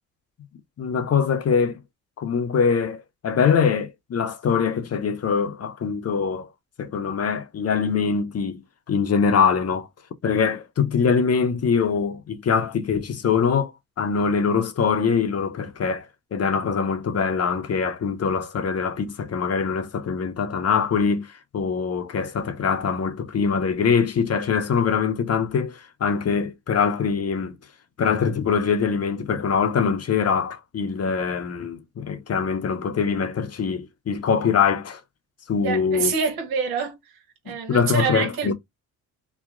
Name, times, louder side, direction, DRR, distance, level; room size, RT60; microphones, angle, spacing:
voice 1, 0.8-1.8 2.2-6.5 6.8-8.6 8.9-9.9 10.2-13.7 14.0-27.5 28.0-35.0 35.5-36.1 37.5-38.5, left 6 dB, 40° left, 0.7 m, -23 dB
voice 2, 35.6-36.9 37.4-38.5, right 6 dB, 75° right, 1.2 m, -26 dB
2.9 x 2.2 x 2.4 m
supercardioid pair, 60°, 38 cm